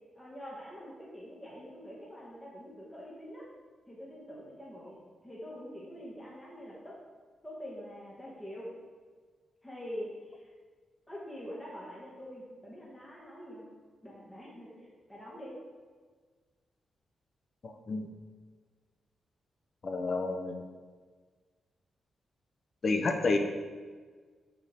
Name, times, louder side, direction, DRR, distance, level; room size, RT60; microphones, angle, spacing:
voice 1, 0.2-3.4 3.9-7.0 7.4-8.7 9.6-10.5 11.1-13.7 14.0-15.5, equal, 10° left, -6 dB, 2.0 m, -45 dB
voice 2, 17.6-18.1 19.8-20.6 22.8-23.4, left 3 dB, 45° left, 5 dB, 0.7 m, -30 dB
13.5 x 4.7 x 3.6 m, 1.5 s
wide cardioid pair, 115°, 0 cm